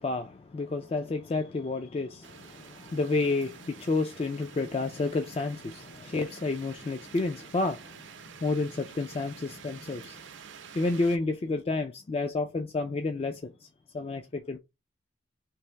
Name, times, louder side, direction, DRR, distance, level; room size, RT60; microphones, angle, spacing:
voice 1, 0.0-8.0 8.4-10.2 10.7-13.7 13.9-14.6, left 3 dB, 30° left, 0.3 m, -30 dB
sound 1, 2.2-11.2, right 6 dB, 80° right, 0.6 m, -49 dB
3.3 x 2.5 x 4.4 m
head